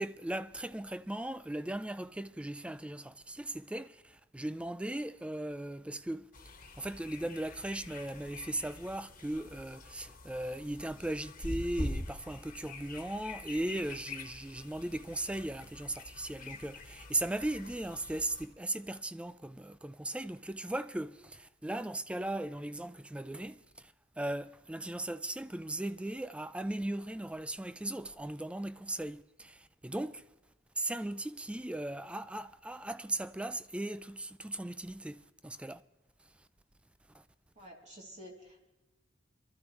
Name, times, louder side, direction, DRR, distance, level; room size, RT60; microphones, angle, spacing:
voice 1, 0.0-6.5 6.8-30.2 30.8-35.8 37.1-37.2, right 1 dB, 5° right, 0.3 m, -38 dB
sound 1, 6.3-18.5, left 1 dB, 45° left, 1.5 m, -45 dB
voice 2, 37.6-38.7, equal, 40° right, 2.9 m, -50 dB
22.5 x 13.0 x 3.1 m
head